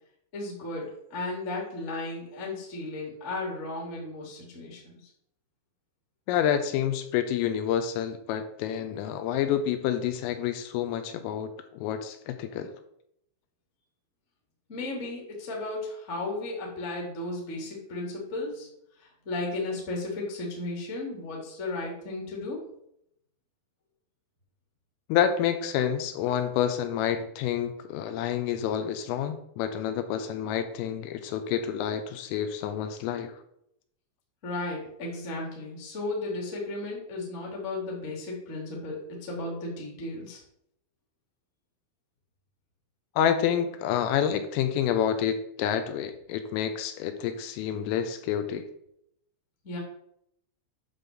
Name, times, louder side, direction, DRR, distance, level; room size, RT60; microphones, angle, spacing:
voice 1, 0.3-5.0 14.7-18.7 19.0-22.6 34.4-40.4 49.6-49.8, left 2 dB, 35° left, -2 dB, 1.1 m, -35 dB
voice 2, 6.3-12.7 25.1-33.3 43.2-48.6, left 9 dB, 85° left, 8 dB, 3.2 m, -28 dB
9.7 x 3.7 x 6.7 m, 0.75 s
omnidirectional pair, 6.0 m